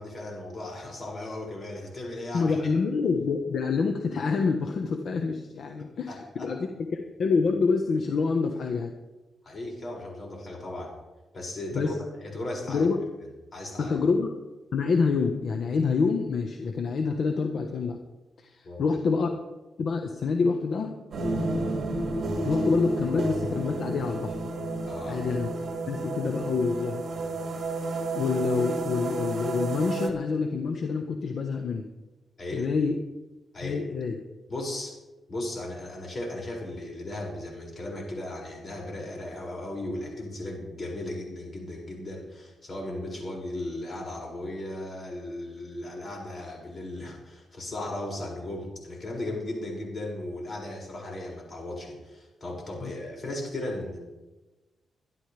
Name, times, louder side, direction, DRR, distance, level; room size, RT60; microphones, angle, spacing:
voice 1, 0.0-2.6 6.1-6.5 9.4-10.9 11.3-11.9 12.2-12.8 13.5-13.9 18.6-18.8 24.9-25.2 32.4-32.7 33.5-33.8 34.5-34.9 35.3-54.0, left 1 dB, 40° left, -1 dB, 6.3 m, -36 dB
voice 2, 2.3-6.1 6.4-6.6 6.9-8.9 11.7-11.9 12.7-13.0 13.8-14.3 14.7-18.0 18.4-19.3 19.8-20.9 22.4-24.4 25.1-25.5 25.9-27.0 28.1-31.9 32.5-33.0 33.6-34.1 52.8-52.9, left 4 dB, 65° left, 4 dB, 1.3 m, -27 dB
sound 1, 21.1-30.1, right 2 dB, 60° right, 2.3 m, -31 dB
23.5 x 11.5 x 3.5 m, 1.1 s
cardioid pair, 95°, 0 cm